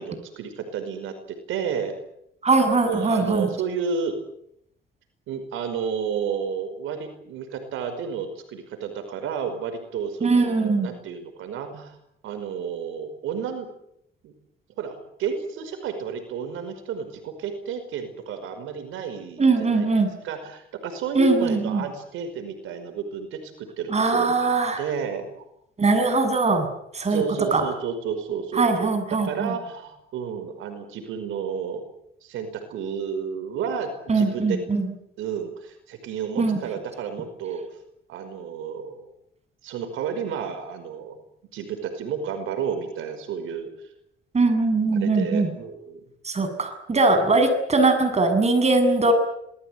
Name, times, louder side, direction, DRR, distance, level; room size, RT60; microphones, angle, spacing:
voice 1, 0.0-2.0 2.8-4.2 5.3-12.0 12.2-13.7 14.2-14.3 14.8-19.9 20.2-24.5 24.8-25.3 27.1-31.9 32.2-34.6 35.2-37.6 38.1-39.1 39.6-41.2 41.5-43.7 45.0-46.0 47.3-47.4, right 6 dB, 90° right, 8 dB, 5.2 m, -31 dB
voice 2, 2.4-3.5 10.2-10.9 19.4-20.1 21.1-21.8 23.9-24.8 25.8-26.7 26.9-27.2 27.5-27.6 28.6-29.5 34.1-34.9 36.4-36.6 44.3-45.5 46.2-49.1, right 3 dB, 35° right, 8 dB, 7.5 m, -21 dB
26.5 x 20.0 x 9.5 m, 0.76 s
cardioid pair, 90°, 20 cm